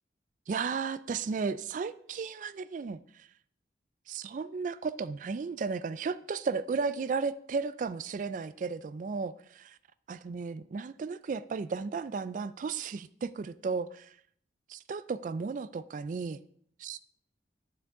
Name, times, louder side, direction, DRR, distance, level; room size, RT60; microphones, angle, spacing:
voice 1, 0.5-3.3 4.1-9.8 10.1-14.2 14.7-16.4 16.8-17.0, right 5 dB, 45° right, 15 dB, 0.3 m, -34 dB
11.0 x 6.9 x 3.7 m, 0.63 s
head